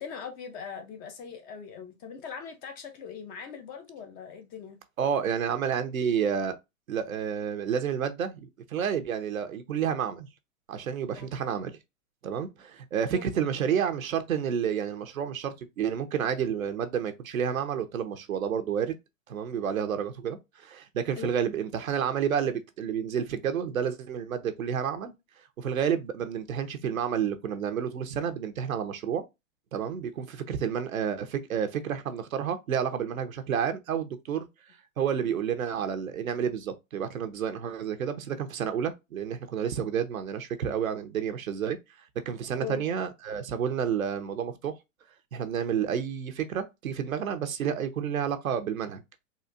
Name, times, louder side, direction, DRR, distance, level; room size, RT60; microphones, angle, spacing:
voice 1, 0.0-4.8 11.2-11.3 13.1-13.2 21.2-21.3 42.6-42.8, left 6 dB, 20° left, 0.5 m, -40 dB
voice 2, 5.0-6.6 6.9-10.3 10.7-11.8 12.2-19.0 19.3-25.1 25.6-29.2 29.7-34.5 35.0-41.8 42.3-44.7 45.3-49.0, right 8 dB, 85° right, 0.8 m, -30 dB
4.1 x 2.5 x 2.5 m
hypercardioid pair, 125°, 41 cm